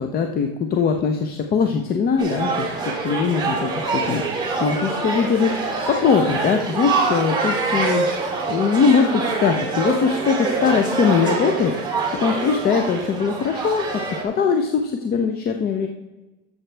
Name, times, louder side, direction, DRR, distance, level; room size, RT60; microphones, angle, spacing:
voice 1, 0.0-3.8 4.1-8.1 8.5-13.9 14.2-15.9, left 6 dB, 30° left, 5 dB, 0.7 m, -21 dB
sound 1, 2.2-14.2, right 3 dB, 15° right, 2.3 m, -25 dB
12.5 x 7.3 x 3.4 m, 1.1 s
supercardioid pair, 130°, 30 cm